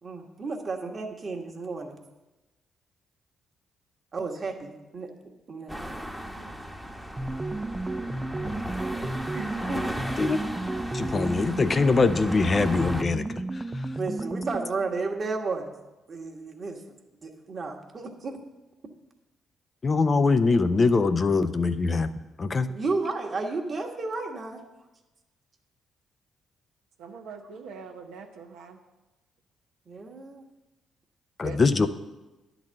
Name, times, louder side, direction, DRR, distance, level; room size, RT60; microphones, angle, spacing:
voice 1, 0.0-2.0 4.1-5.1 5.5-5.9 9.0-9.8 14.0-15.7 16.1-16.8 17.2-18.4 22.7-24.6 29.9-30.4, right 3 dB, 45° right, 2 dB, 1.4 m, -33 dB
sound 1, 5.7-13.0, equal, ahead, 1.0 m, -36 dB
sound 2, 7.2-14.8, right 2 dB, 20° right, 0.4 m, -33 dB
voice 2, 10.9-13.6 19.8-22.1 22.4-22.7 31.4-31.9, left 4 dB, 40° left, 10 dB, 0.5 m, -23 dB
voice 3, 27.0-28.8 31.4-31.6, right 5 dB, 80° right, 3 dB, 0.8 m, -42 dB
10.5 x 4.0 x 7.5 m, 1.1 s
hypercardioid pair, 50°, 0 cm